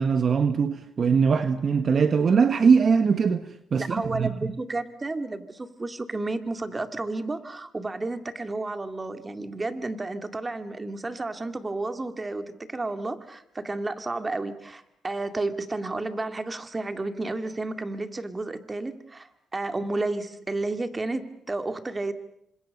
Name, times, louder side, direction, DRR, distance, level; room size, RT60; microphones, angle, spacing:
voice 1, 0.0-4.5, right 5 dB, 45° right, 1.3 m, -22 dB
voice 2, 3.8-22.1, right 2 dB, 20° right, 2.3 m, -32 dB
29.0 x 25.5 x 6.6 m
cardioid pair, 90°, 0 cm